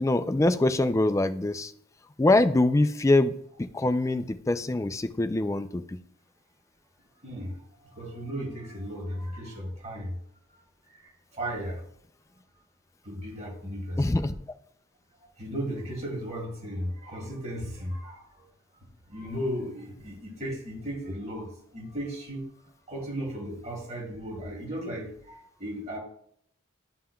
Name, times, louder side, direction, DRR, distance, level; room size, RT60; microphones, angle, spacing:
voice 1, 0.0-1.7 2.2-6.0 14.0-14.4, left 2 dB, 15° left, 10 dB, 0.3 m, -24 dB
voice 2, 7.2-7.5 7.8-10.2 10.5-11.8 13.0-14.2 15.2-18.5 19.1-22.5 22.9-26.0, equal, 35° right, -1 dB, 2.4 m, -36 dB
11.0 x 5.6 x 2.3 m, 0.66 s
head